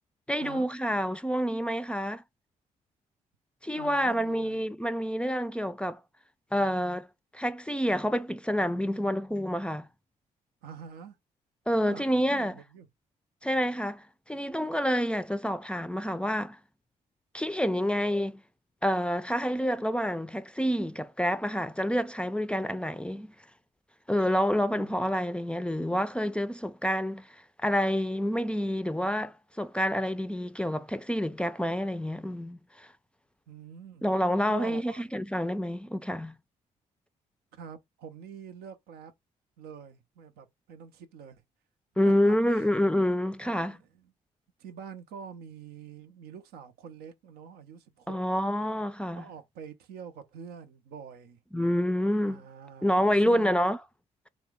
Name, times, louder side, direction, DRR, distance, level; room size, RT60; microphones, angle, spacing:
voice 1, 0.3-2.2 3.6-6.0 6.5-7.1 7.3-9.9 11.7-12.5 13.4-16.6 17.3-18.4 18.8-23.3 24.1-27.3 27.6-32.9 34.0-36.4 42.0-43.8 48.1-49.2 51.5-52.4 52.8-53.8, equal, 5° left, 0.4 m, -28 dB
voice 2, 3.7-4.6 10.6-11.2 11.8-12.9 24.7-25.0 33.5-34.1 34.5-35.0 37.5-39.1 39.6-41.4 42.0-42.7 43.4-44.1 44.6-48.2 49.1-51.4 52.3-53.6, right 7 dB, 80° right, 0.5 m, -46 dB
2.8 x 2.0 x 3.4 m
hypercardioid pair, 45°, 16 cm